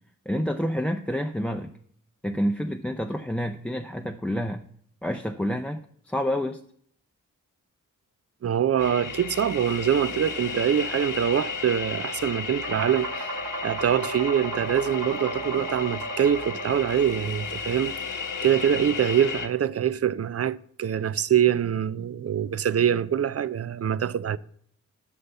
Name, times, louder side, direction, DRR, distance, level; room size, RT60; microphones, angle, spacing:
voice 1, 0.3-1.7 2.2-4.6 5.0-6.6, equal, 5° left, 0.6 m, -28 dB
voice 2, 8.4-13.3 13.6-18.0 18.4-24.4, right 9 dB, 45° right, 0.4 m, -24 dB
sound 1, 8.8-19.5, left 5 dB, 70° left, 1.0 m, -34 dB
sound 2, 12.6-17.9, right 2 dB, 85° right, 1.6 m, -35 dB
7.7 x 5.5 x 6.9 m
cardioid pair, 45°, 33 cm